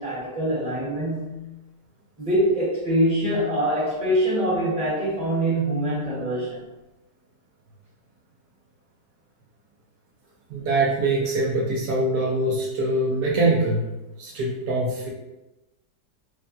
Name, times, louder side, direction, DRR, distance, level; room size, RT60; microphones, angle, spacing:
voice 1, 0.0-1.5 2.2-6.6, right 1 dB, 5° right, -8 dB, 0.9 m, -24 dB
voice 2, 10.5-13.9 14.2-15.1, right 2 dB, 75° right, -3 dB, 1.1 m, -23 dB
3.3 x 2.2 x 2.5 m, 1.0 s
omnidirectional pair, 1.9 m